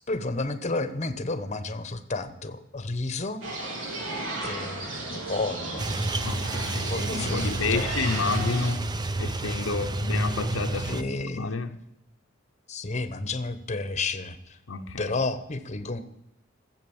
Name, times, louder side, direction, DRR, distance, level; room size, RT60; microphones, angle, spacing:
voice 1, 0.1-3.4 4.4-5.9 6.9-7.9 10.9-11.5 12.7-14.6 15.0-16.0, left 3 dB, 35° left, 1.0 m, -31 dB
sound 1, 3.4-8.7, right 2 dB, 75° right, 3.1 m, -34 dB
sound 2, 5.8-11.0, right 2 dB, 20° right, 0.6 m, -30 dB
voice 2, 6.2-8.9 9.2-11.0 11.4-11.8 14.7-15.2, left 4 dB, 85° left, 0.9 m, -30 dB
14.0 x 7.8 x 7.1 m
head